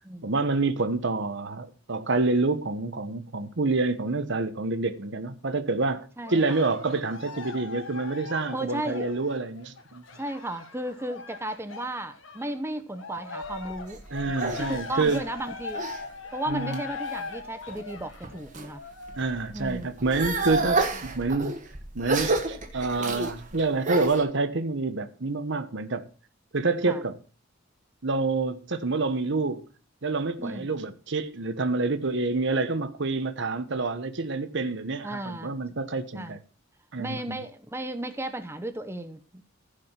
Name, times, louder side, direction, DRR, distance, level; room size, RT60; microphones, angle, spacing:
voice 1, 0.2-10.0 14.1-15.2 16.5-16.8 19.2-21.6 21.9-26.0 26.5-27.2 28.0-29.6 30.0-36.4 36.9-37.4, right 3 dB, 60° right, 1.1 m, -27 dB
Cheering, 6.2-12.6 12.9-19.5 20.1-20.2, left 4 dB, 70° left, 1.5 m, -40 dB
voice 2, 6.2-6.7 8.5-9.2 10.1-15.8 16.3-18.8 19.5-19.9 23.2-23.3 26.9-27.0 30.4-30.7 35.0-35.5 36.1-36.4 37.0-39.4, right 1 dB, 10° right, 0.9 m, -35 dB
sound 1, 13.4-16.0 16.5-17.1 17.7-18.7 19.1-24.2, right 3 dB, 40° right, 1.6 m, -30 dB
15.0 x 5.1 x 5.9 m
head